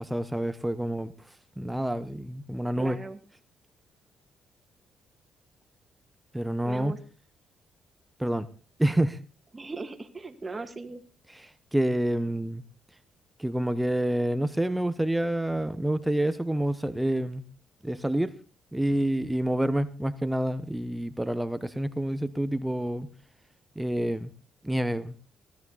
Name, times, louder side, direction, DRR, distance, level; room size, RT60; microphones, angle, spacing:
voice 1, 0.0-3.0 6.3-7.0 8.2-8.5 8.8-9.2 11.3-12.6 13.4-17.4 17.8-18.3 18.7-23.1 23.8-24.3 24.6-25.1, right 1 dB, 5° right, 13 dB, 0.9 m, -28 dB
voice 2, 2.8-3.2 6.6-7.0 9.5-11.0, right 3 dB, 25° right, 8 dB, 2.0 m, -38 dB
17.0 x 12.5 x 4.1 m, 0.35 s
cardioid pair, 90°, 0 cm